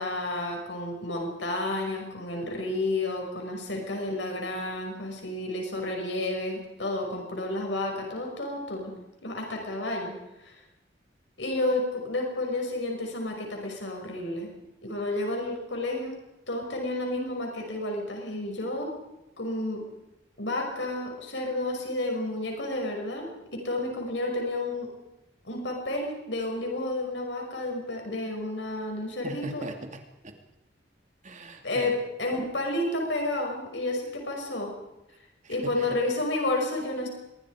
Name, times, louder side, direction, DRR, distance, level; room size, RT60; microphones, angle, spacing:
voice 1, 0.0-8.9 9.2-10.1 10.4-10.5 11.4-14.5 14.8-16.1 16.5-18.9 19.4-19.8 20.4-24.9 25.4-29.6 31.6-34.7 35.5-37.1, left 2 dB, 80° left, 1 dB, 5.9 m, -31 dB
voice 2, 29.2-30.3 31.2-31.9 35.4-35.9, right 1 dB, 45° right, 5 dB, 2.5 m, -40 dB
25.0 x 22.0 x 4.9 m, 0.96 s
head